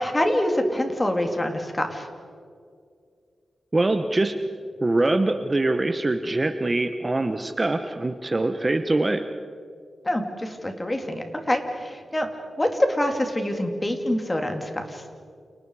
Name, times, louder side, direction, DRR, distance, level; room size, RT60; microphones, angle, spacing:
voice 1, 0.0-2.1 10.0-12.3 12.6-15.0, left 1 dB, 20° left, 4 dB, 3.2 m, -25 dB
voice 2, 3.7-4.4 4.8-9.2, right 2 dB, 25° right, 8 dB, 1.1 m, -23 dB
30.0 x 29.5 x 5.0 m, 2.3 s
wide cardioid pair, 95°, 0 cm